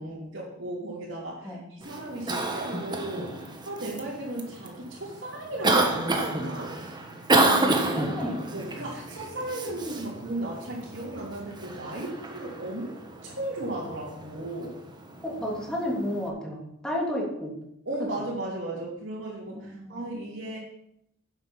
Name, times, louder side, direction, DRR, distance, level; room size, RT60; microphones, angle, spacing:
voice 1, 0.0-6.8 8.5-13.0 13.2-14.8 17.8-20.6, right 1 dB, 65° right, -7 dB, 2.9 m, -35 dB
Cough, 1.8-16.3, right 2 dB, 20° right, 1.3 m, -30 dB
voice 2, 7.5-8.4 15.2-17.5 19.5-20.0, equal, 5° left, -3 dB, 3.1 m, -32 dB
10.5 x 7.9 x 5.7 m, 0.77 s
head